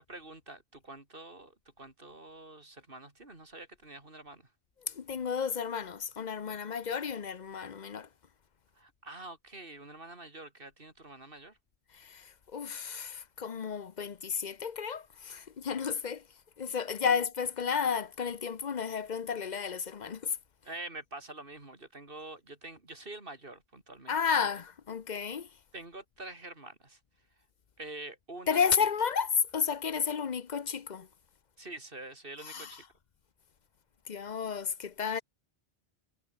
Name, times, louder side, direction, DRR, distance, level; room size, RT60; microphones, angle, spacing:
voice 1, 0.0-4.5 8.8-11.6 17.0-17.2 20.6-24.5 25.7-27.0 27.8-28.6 31.6-32.8 35.1-35.2, right 2 dB, 55° right, 4.0 m, -46 dB
voice 2, 4.9-8.1 11.9-16.2 16.6-20.4 24.1-25.5 28.5-31.1 32.4-32.8 34.1-35.2, left 6 dB, 45° left, 0.9 m, -32 dB
omnidirectional pair, 1.1 m